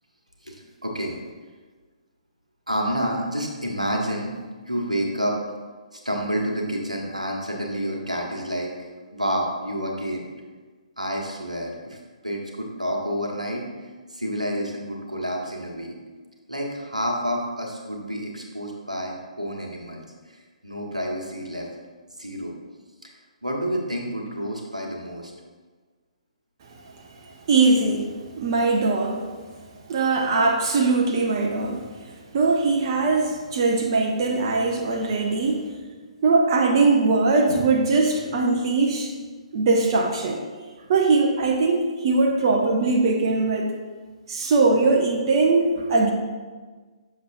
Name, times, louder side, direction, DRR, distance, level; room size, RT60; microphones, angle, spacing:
voice 1, 0.4-1.2 2.7-4.3 4.6-5.4 5.9-10.2 11.0-13.6 14.1-15.9 16.5-20.0 20.3-21.7 22.2-22.5 23.0-23.1 23.4-25.3, equal, 90° right, 0 dB, 1.2 m, -29 dB
voice 2, 27.5-29.3 29.9-31.9 32.3-35.7 36.2-39.1 39.5-40.4 40.9-43.7 44.3-46.1, right 3 dB, 40° right, 1 dB, 0.6 m, -21 dB
6.8 x 6.5 x 2.5 m, 1.4 s
figure-of-eight pair, 130°, 4 cm